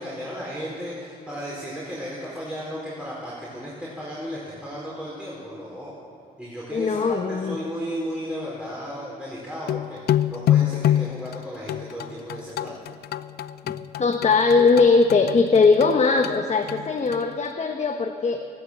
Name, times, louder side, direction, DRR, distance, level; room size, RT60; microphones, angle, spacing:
voice 1, 0.0-6.0 6.4-12.8, equal, 5° right, -7 dB, 4.5 m, -34 dB
voice 2, 6.7-7.6 13.6-18.4, left 4 dB, 40° left, 4 dB, 1.1 m, -20 dB
sound 1, 9.7-17.2, left 12 dB, 70° left, 0.5 m, -26 dB
13.5 x 11.5 x 7.5 m, 2.5 s
supercardioid pair, 60°, 17 cm